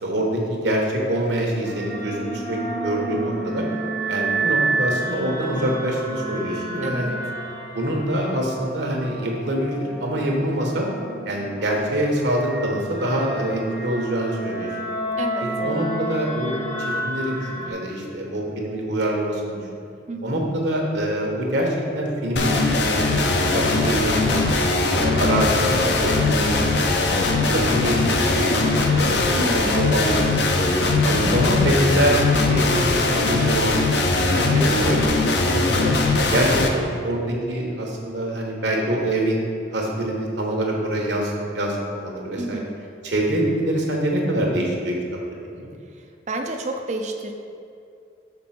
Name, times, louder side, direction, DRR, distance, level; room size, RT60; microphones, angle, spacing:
voice 1, 0.0-3.7 4.1-7.2 7.7-9.7 10.0-10.9 11.3-14.7 15.6-19.6 20.2-23.3 23.5-24.4 25.0-26.6 27.5-30.4 31.0-35.9 36.3-39.4 39.7-42.6 43.0-45.0 45.5-45.7, right 1 dB, 70° right, -1 dB, 1.2 m, -25 dB
sound 1, 1.6-17.7, right 2 dB, 45° left, 0.9 m, -30 dB
voice 2, 6.8-7.2 15.2-15.5 20.1-20.4 29.3-29.8 42.4-42.8 46.3-47.3, right 2 dB, 40° right, 4 dB, 0.4 m, -29 dB
sound 2, 22.4-36.7, left 2 dB, 65° left, 0.6 m, -20 dB
5.9 x 4.1 x 5.8 m, 2.5 s
head